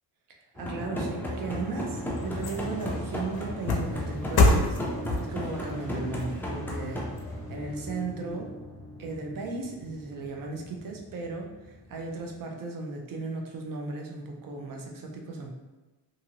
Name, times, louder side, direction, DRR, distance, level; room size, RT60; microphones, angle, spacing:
voice 1, 0.3-8.5 9.0-15.5, right 3 dB, 50° right, 1 dB, 0.6 m, -36 dB
sound 1, 0.6-12.4, equal, 5° left, 0.3 m, -36 dB
sound 2, 1.4-7.9 8.3-8.4, left 2 dB, 55° left, 0.6 m, -29 dB
2.6 x 2.6 x 2.8 m, 1.1 s
cardioid pair, 115°, 45 cm